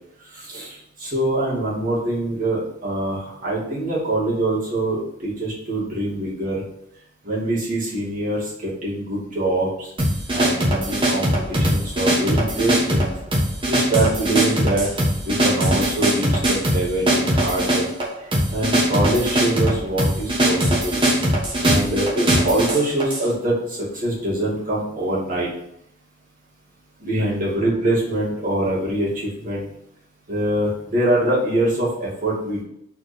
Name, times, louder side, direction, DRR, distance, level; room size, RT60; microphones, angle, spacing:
voice 1, 0.3-6.6 7.2-9.9 10.3-13.1 13.7-14.9 15.2-17.9 18.2-21.0 21.6-25.5 27.0-29.7 30.3-32.6, right 1 dB, 45° right, -6 dB, 2.3 m, -24 dB
sound 1, 10.0-23.3, right 1 dB, 25° right, 1.4 m, -21 dB
4.4 x 4.3 x 5.1 m, 0.75 s
head